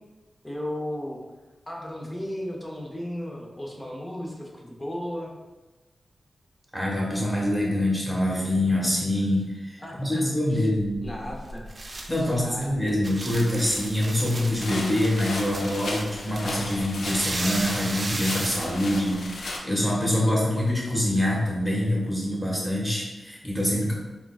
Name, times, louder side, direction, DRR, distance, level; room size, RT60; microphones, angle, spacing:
voice 1, 0.4-1.2 1.7-5.3 9.8-10.2 10.5-10.7 11.0-11.7 12.1-13.0, equal, 20° left, -1 dB, 0.6 m, -35 dB
voice 2, 6.7-11.0 12.1-23.9, left 1 dB, 5° left, -4 dB, 1.1 m, -25 dB
sound 1, 10.8-19.6, right 2 dB, 45° right, 0.4 m, -36 dB
sound 2, 14.6-19.6, left 2 dB, 75° left, 0.4 m, -35 dB
3.7 x 2.3 x 2.3 m, 1.2 s
cardioid pair, 45°, 0 cm